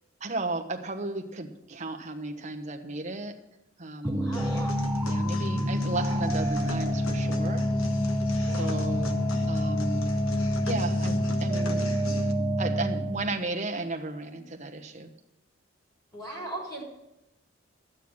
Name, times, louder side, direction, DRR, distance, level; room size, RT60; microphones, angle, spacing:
voice 1, 0.2-3.4 3.8-4.3 5.1-7.6 8.4-9.2 9.5-10.0 10.6-11.9 12.6-15.1, right 2 dB, 35° right, 5 dB, 1.1 m, -34 dB
voice 2, 4.0-4.8 8.5-8.7 16.1-16.8, right 1 dB, 20° left, -2 dB, 3.8 m, -39 dB
sound 1, 4.0-13.3, equal, 10° right, 0.9 m, -27 dB
sound 2, 4.3-12.3, left 2 dB, 85° left, 1.3 m, -40 dB
12.5 x 9.2 x 6.1 m, 0.88 s
head